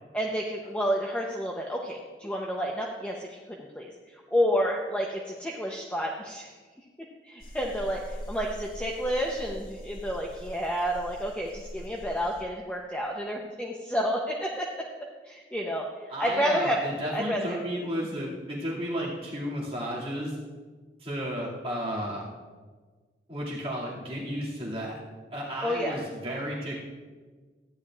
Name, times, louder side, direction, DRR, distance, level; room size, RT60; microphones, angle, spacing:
voice 1, 0.1-6.5 7.2-14.9 15.2-16.8 17.1-17.6 25.6-26.0, equal, 5° left, -1 dB, 0.6 m, -30 dB
sound 1, 7.4-12.4, equal, 50° left, 1.8 m, -42 dB
voice 2, 16.1-20.4 21.0-22.3 23.3-25.0 25.3-26.8, equal, 35° right, -7 dB, 2.2 m, -33 dB
14.5 x 10.0 x 2.4 m, 1.4 s
head